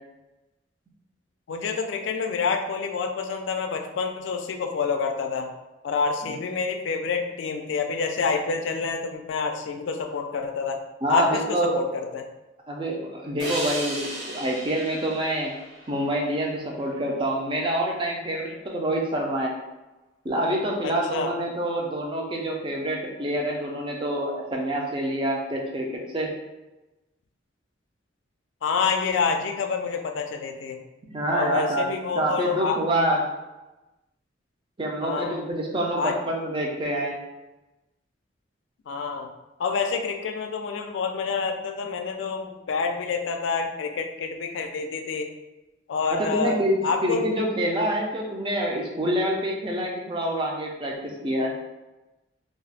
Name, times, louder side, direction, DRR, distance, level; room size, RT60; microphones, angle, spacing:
voice 1, 1.5-5.5 5.8-10.8 11.1-12.3 20.8-21.3 28.6-30.8 31.3-32.8 35.0-35.4 36.0-36.2 38.9-39.3 39.6-45.3 45.9-47.3, left 5 dB, 80° left, 4 dB, 0.4 m, -28 dB
voice 2, 11.0-11.8 12.7-15.5 15.9-19.5 20.2-26.3 31.1-31.9 32.1-33.2 34.8-37.2 46.1-51.5, right 1 dB, 25° right, -1 dB, 0.5 m, -26 dB
sound 1, 13.4-16.7, right 1 dB, 65° right, 0.8 m, -35 dB
2.4 x 2.1 x 3.9 m, 1.0 s
head